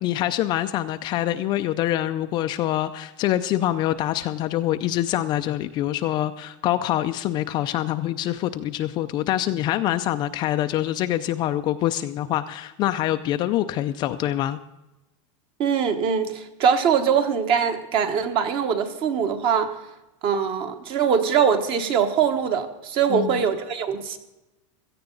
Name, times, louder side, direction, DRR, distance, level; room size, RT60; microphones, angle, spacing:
voice 1, 0.0-14.6 23.1-23.4, left 13 dB, 25° left, 9 dB, 0.4 m, -25 dB
voice 2, 15.6-19.7 20.2-24.2, right 7 dB, 30° right, 8 dB, 1.3 m, -22 dB
16.5 x 14.0 x 3.9 m, 0.97 s
supercardioid pair, 165°, 16 cm